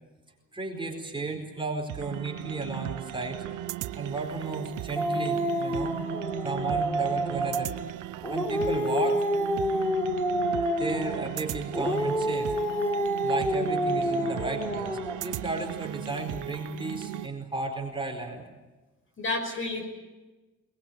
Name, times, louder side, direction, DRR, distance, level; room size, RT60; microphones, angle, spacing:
voice 1, 0.5-3.5 4.0-5.9 6.4-7.7 8.3-9.3 9.8-9.9 10.8-12.5 13.2-18.4, right 3 dB, 15° right, 2 dB, 4.5 m, -34 dB
sound 1, 1.9-17.3, right 13 dB, 80° right, 0.9 m, -37 dB
Dog, 5.0-7.8 8.2-11.3 11.7-15.3, equal, 10° left, 4.3 m, -28 dB
voice 2, 9.9-10.2 19.2-19.8, left 2 dB, 45° left, 5 dB, 5.6 m, -32 dB
21.0 x 21.0 x 8.8 m, 1.2 s
cardioid pair, 90°, 30 cm